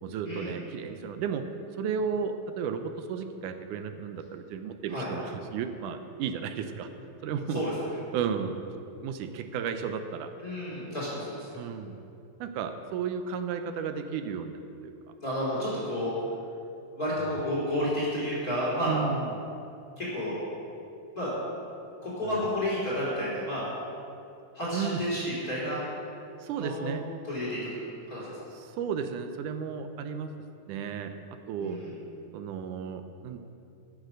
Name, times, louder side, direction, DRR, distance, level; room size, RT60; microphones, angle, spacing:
voice 1, 0.0-1.5 1.8-6.9 7.2-7.7 8.1-8.6 9.0-10.3 11.6-12.0 12.4-14.9 18.9-19.4 22.2-22.4 24.7-25.0 26.4-27.0 28.5-30.3 30.7-31.1 31.5-31.8 32.3-33.4, right 7 dB, 75° right, 8 dB, 2.0 m, -33 dB
voice 2, 10.4-11.5 15.2-16.1 16.9-18.9 20.0-20.4 21.1-21.3 22.0-23.6 24.5-25.8 26.6-26.9 27.2-27.8 28.1-28.2 31.6-31.9, equal, 25° left, -7 dB, 3.4 m, -31 dB
15.5 x 7.5 x 6.3 m, 2.7 s
omnidirectional pair, 4.0 m